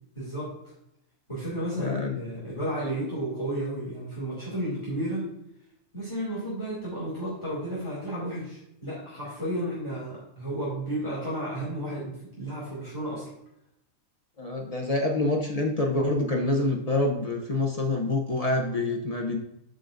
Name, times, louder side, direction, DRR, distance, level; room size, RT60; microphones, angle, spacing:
voice 1, 0.1-0.5 1.3-5.3 5.9-13.3, right 1 dB, 20° left, -8 dB, 2.5 m, -32 dB
voice 2, 1.8-2.2 14.4-19.4, left 2 dB, 35° left, 2 dB, 0.6 m, -26 dB
12.0 x 4.7 x 2.5 m, 0.81 s
omnidirectional pair, 1.4 m